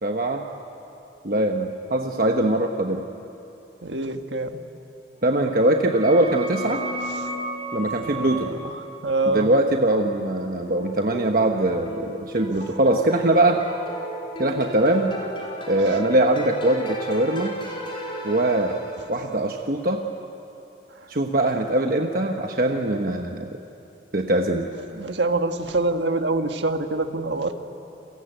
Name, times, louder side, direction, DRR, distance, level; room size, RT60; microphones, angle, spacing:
voice 1, 0.0-0.4 1.2-3.0 5.2-6.8 7.7-8.5 9.3-13.6 14.4-15.1 15.7-17.6 18.2-18.8 19.1-20.0 21.1-23.6 24.1-24.7, right 1 dB, 50° right, 3 dB, 1.2 m, -22 dB
voice 2, 3.8-4.6 8.0-8.7 9.0-9.5 21.0-21.1 24.9-27.6, right 2 dB, 85° right, 6 dB, 1.6 m, -25 dB
sound 1, 5.3-10.8, right 1 dB, 35° right, 5.3 m, -35 dB
sound 2, 10.4-19.2, right 1 dB, 30° left, 5.5 m, -36 dB
29.5 x 22.0 x 9.2 m, 2.8 s
head